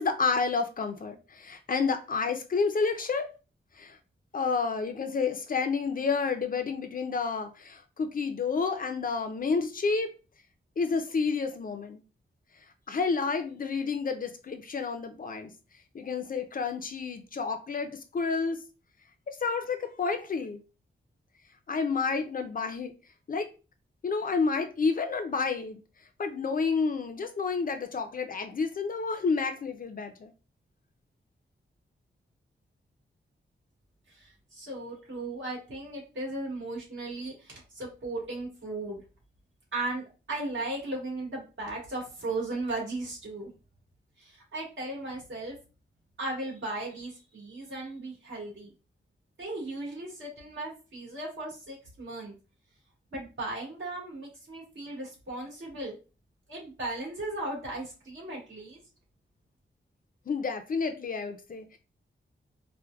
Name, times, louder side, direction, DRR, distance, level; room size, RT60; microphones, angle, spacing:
voice 1, 0.0-3.3 3.8-4.0 4.3-10.1 10.8-12.0 12.9-15.5 15.9-18.6 19.4-20.6 21.7-22.9 23.3-23.5 24.0-25.8 26.2-30.3 60.3-61.8, left 4 dB, 45° left, 0.4 m, -30 dB
voice 2, 34.1-39.0 39.7-43.5 44.2-45.6 46.2-48.7 49.4-52.3 53.1-56.0 56.5-58.8, right 2 dB, 70° right, 1.8 m, -36 dB
4.4 x 2.1 x 2.3 m
wide cardioid pair, 140°, 20 cm